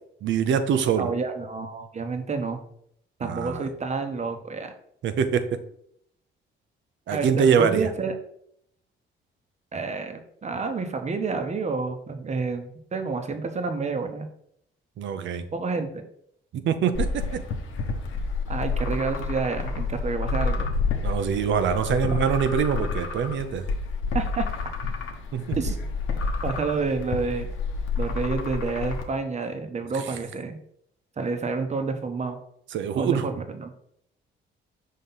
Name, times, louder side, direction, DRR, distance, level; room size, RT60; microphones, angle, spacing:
voice 1, 0.2-1.1 3.2-3.7 5.0-5.6 7.1-7.9 15.0-15.5 16.6-17.4 21.0-23.7 25.3-25.6 29.9-30.0 32.7-33.3, right 7 dB, 70° right, 9 dB, 0.7 m, -24 dB
voice 2, 1.0-2.6 3.2-4.7 7.1-8.1 9.7-14.3 15.5-16.0 18.5-20.7 23.0-23.1 24.1-24.5 25.6-25.8 26.4-27.5 28.0-30.6 31.2-32.4 33.0-33.7, right 4 dB, 35° right, 7 dB, 1.0 m, -29 dB
sound 1, 16.9-29.0, left 4 dB, 85° left, 1.0 m, -29 dB
5.6 x 3.2 x 5.6 m, 0.70 s
cardioid pair, 90°, 20 cm